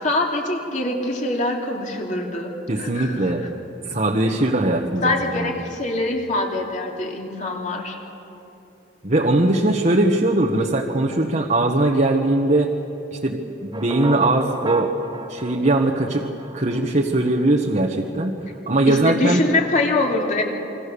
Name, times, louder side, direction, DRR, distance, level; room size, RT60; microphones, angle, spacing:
voice 1, 0.0-3.5 3.9-4.0 5.0-8.0 18.8-20.4, left 2 dB, 40° left, 1 dB, 3.1 m, -24 dB
voice 2, 2.7-3.4 3.9-5.5 9.0-12.7 13.2-14.9 15.3-16.2 16.5-18.3 18.7-19.4, right 2 dB, 40° right, 0 dB, 1.4 m, -20 dB
sound 1, 13.7-17.9, right 2 dB, 25° right, 1.2 m, -34 dB
27.5 x 24.0 x 6.9 m, 2.9 s
head